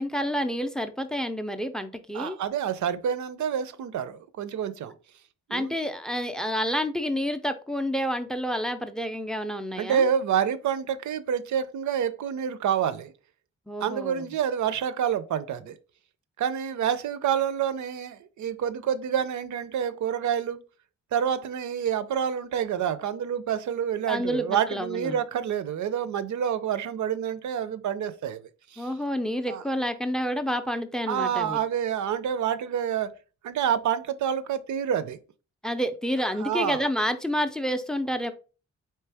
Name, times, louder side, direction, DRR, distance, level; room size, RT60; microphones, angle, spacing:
voice 1, 0.0-2.4 5.5-10.1 13.7-14.3 24.1-25.2 28.8-31.6 35.6-38.3, equal, ahead, 0.4 m, -29 dB
voice 2, 2.1-4.9 5.5-5.7 9.8-13.1 13.8-15.8 16.4-20.6 21.1-28.9 29.5-29.6 31.1-33.1 33.4-35.2 36.4-36.9, right 8 dB, 80° right, 0.6 m, -28 dB
4.5 x 3.2 x 3.4 m
wide cardioid pair, 165°, 29 cm